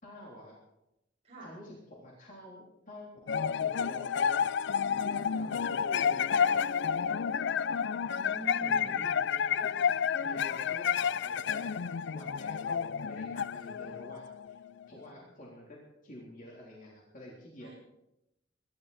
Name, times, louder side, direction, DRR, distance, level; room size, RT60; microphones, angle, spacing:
voice 1, 0.0-0.6 1.4-4.2 5.0-6.7 8.6-11.8 12.1-14.6 14.9-17.7, left 1 dB, 45° left, -3 dB, 3.5 m, -49 dB
sound 1, 3.3-14.8, left 7 dB, 65° left, 0.4 m, -30 dB
voice 2, 7.8-9.1 14.8-15.3 17.6-17.7, right 1 dB, 35° right, -6 dB, 7.7 m, -46 dB
23.0 x 12.5 x 4.2 m, 0.86 s
head